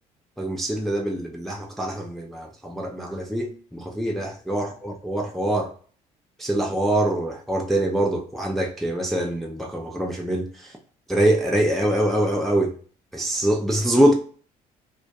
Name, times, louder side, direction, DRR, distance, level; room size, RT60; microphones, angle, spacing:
voice 1, 0.4-5.7 6.4-10.8 11.1-12.7 13.1-14.1, right 1 dB, ahead, 0.4 m, -24 dB
2.2 x 2.1 x 2.6 m
hypercardioid pair, 60°, 20 cm